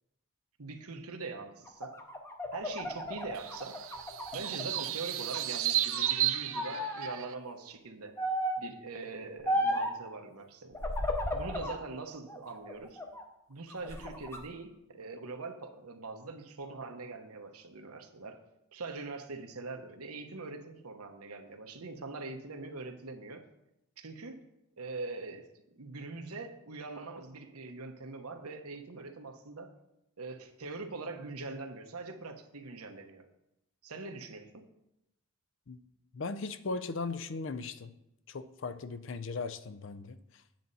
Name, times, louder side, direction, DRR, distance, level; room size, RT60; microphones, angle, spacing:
voice 1, 0.6-2.0 2.5-3.8 4.3-8.1 8.6-10.8 11.3-13.0 13.5-18.4 18.7-23.4 24.0-24.4 24.8-25.5 25.7-29.7 30.2-33.2 33.8-34.6, right 3 dB, 90° right, 5 dB, 1.1 m, -43 dB
sound 1, 1.7-4.9 5.3-6.1 6.5-7.2 8.2-8.7 9.5-10.0 10.7-11.8 12.3-13.2 13.7-14.4, equal, 10° left, 0.7 m, -34 dB
sound 2, 3.3-7.3, right 13 dB, 70° right, 0.6 m, -33 dB
voice 2, 36.1-37.9 38.3-40.2, left 4 dB, 55° left, 12 dB, 0.5 m, -38 dB
9.3 x 7.8 x 4.1 m, 0.86 s
head